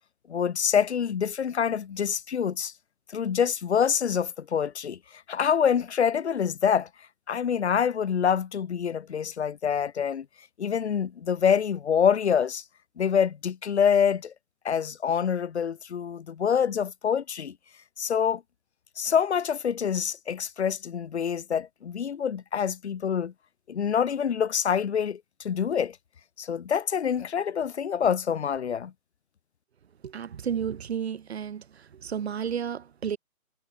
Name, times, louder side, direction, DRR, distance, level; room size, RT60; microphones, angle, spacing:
voice 1, 0.3-2.7 3.1-5.0 5.3-6.9 7.3-10.2 10.6-12.6 13.0-14.3 14.6-17.5 18.0-18.4 19.0-23.3 23.7-26.0 26.4-28.9, left 7 dB, 50° left, 1.6 m, -26 dB
voice 2, 30.0-33.2, right 8 dB, 45° right, 3.2 m, -32 dB
hypercardioid pair, 160°, 43 cm